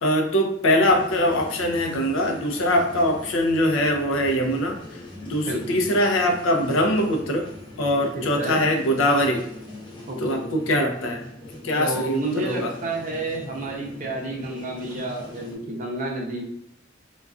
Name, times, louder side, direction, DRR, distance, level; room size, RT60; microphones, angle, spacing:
voice 1, 0.0-7.5 7.8-9.5 10.2-11.3 11.6-12.7, equal, 85° left, 3 dB, 0.4 m, -22 dB
sound 1, 0.8-15.5, left 1 dB, 25° left, 0.5 m, -41 dB
voice 2, 5.5-5.9 8.1-8.6 10.1-10.5 11.8-16.4, right 2 dB, 40° right, -1 dB, 0.6 m, -30 dB
2.3 x 2.2 x 2.3 m, 0.73 s
head